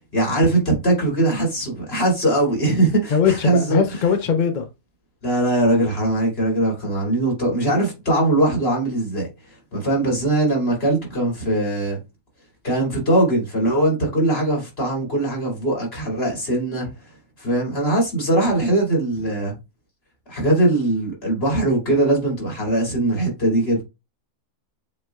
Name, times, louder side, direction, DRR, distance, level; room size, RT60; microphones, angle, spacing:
voice 1, 0.1-3.8 5.2-9.3 9.7-12.0 12.6-16.9 17.4-19.6 20.3-23.8, right 1 dB, 40° left, 2.8 m, -21 dB
voice 2, 3.1-4.6, left 7 dB, 65° left, 0.4 m, -20 dB
7.5 x 3.1 x 2.3 m
omnidirectional pair, 1.7 m